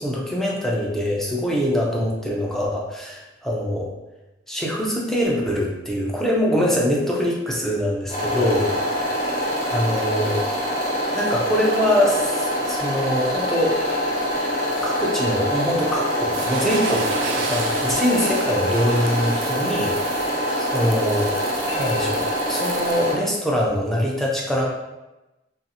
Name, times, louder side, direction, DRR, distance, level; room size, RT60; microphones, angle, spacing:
voice 1, 0.0-3.1 3.4-3.9 4.5-8.7 9.0-9.4 9.7-10.4 11.1-13.8 14.8-20.0 20.6-21.4 21.7-24.6, equal, ahead, -3 dB, 0.4 m, -23 dB
sound 1, 8.1-23.1, equal, 35° left, 1.0 m, -25 dB
sound 2, 13.5-14.8 17.2-19.3 21.6-22.3, left 3 dB, 75° left, 0.6 m, -39 dB
sound 3, 16.3-23.1, right 4 dB, 70° right, 0.4 m, -33 dB
2.6 x 2.3 x 2.7 m, 1.0 s
head